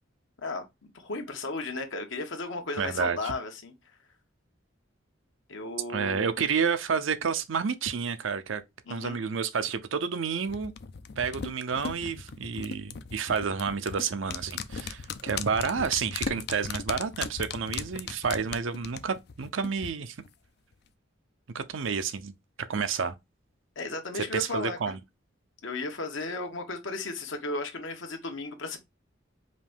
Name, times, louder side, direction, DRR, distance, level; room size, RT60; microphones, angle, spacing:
voice 1, 0.4-3.7 5.5-6.3 8.9-9.2 23.8-25.0 25.6-28.8, left 2 dB, 70° left, 1.2 m, -35 dB
voice 2, 2.8-3.3 5.9-8.6 8.9-10.7 11.2-20.2 21.5-22.3 22.7-23.2 24.1-25.0, right 6 dB, 75° right, 0.6 m, -30 dB
sound 1, 10.5-19.9 20.2-20.3, left 6 dB, 55° left, 0.4 m, -37 dB
5.1 x 2.6 x 3.5 m
head